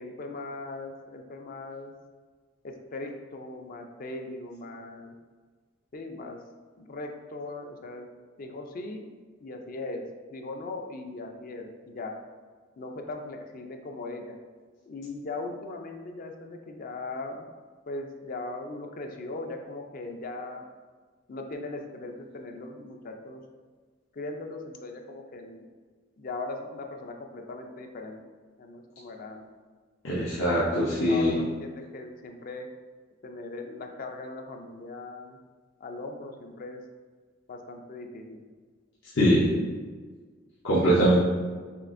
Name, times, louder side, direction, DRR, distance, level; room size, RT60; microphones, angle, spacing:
voice 1, 0.0-1.9 2.6-5.1 5.9-6.4 6.8-8.1 8.4-9.1 9.4-10.0 10.3-12.1 12.8-14.3 14.9-17.4 17.9-20.7 21.3-23.4 24.2-25.6 26.2-28.2 28.6-29.4 30.6-32.7 33.2-35.4 35.8-36.8 37.5-38.4, left 2 dB, 45° left, 4 dB, 0.4 m, -39 dB
voice 2, 30.0-31.4 39.2-39.5 40.6-41.2, equal, 70° left, -8 dB, 0.8 m, -22 dB
6.5 x 2.4 x 2.5 m, 1.5 s
head